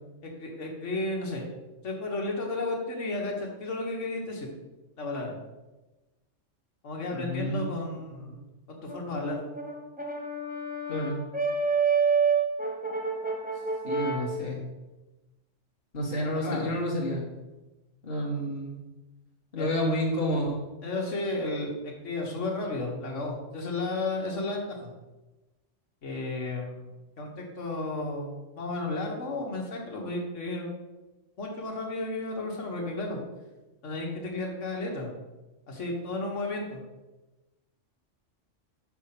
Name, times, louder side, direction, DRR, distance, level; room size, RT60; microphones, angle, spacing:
voice 1, 0.2-1.5 1.8-4.5 5.0-5.4 6.8-9.4 16.3-16.7 19.6-19.7 20.8-24.9 26.0-26.9 27.2-30.7 31.4-33.2 33.8-35.1 35.7-36.8, left 2 dB, 70° left, 0 dB, 1.7 m, -33 dB
voice 2, 7.1-7.7 8.1-8.3 10.9-11.2 13.8-14.6 15.9-17.2 18.0-18.8 19.5-20.6, equal, 50° left, -4 dB, 1.7 m, -30 dB
Brass instrument, 8.9-14.4, right 5 dB, 10° right, 1.0 m, -28 dB
6.1 x 4.8 x 5.9 m, 1.1 s
omnidirectional pair, 1.3 m